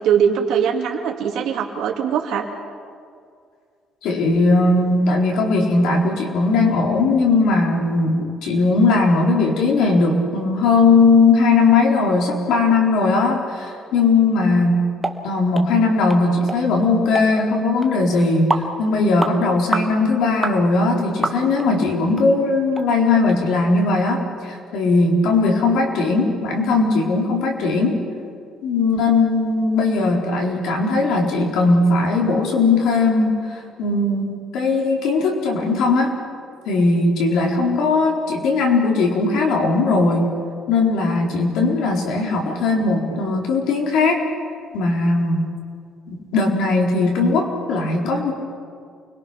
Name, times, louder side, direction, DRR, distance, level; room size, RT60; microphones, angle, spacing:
voice 1, 0.0-2.5, right 8 dB, 65° right, 1 dB, 2.8 m, -21 dB
voice 2, 4.0-14.8 15.2-28.0 28.6-36.2 36.7-40.3 40.7-44.2 44.7-45.5 46.1-48.3, left 3 dB, 80° left, 0 dB, 4.3 m, -18 dB
sound 1, 15.0-15.2 15.5-15.7 16.1-16.2 16.5-16.6 17.2-17.3 17.8-17.9 18.5-18.7 19.2-19.4 19.7-19.9 20.4-20.6 21.2-21.7 22.2-22.3 22.7-22.9 23.3-23.4, right 2 dB, 5° right, 1.1 m, -24 dB
29.0 x 22.5 x 6.0 m, 2.3 s
cardioid pair, 175°, 0 cm